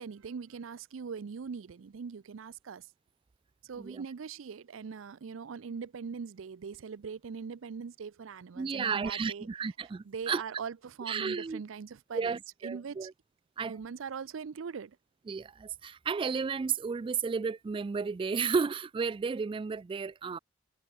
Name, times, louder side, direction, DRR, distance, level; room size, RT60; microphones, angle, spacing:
voice 1, 0.0-2.9 3.6-9.5 10.0-13.1 13.6-15.0, right 6 dB, 80° right, 0.5 m, -41 dB
voice 2, 8.6-10.4 11.1-11.6 12.1-13.1 13.6-13.8 15.3-20.4, right 5 dB, 25° right, 0.3 m, -33 dB
head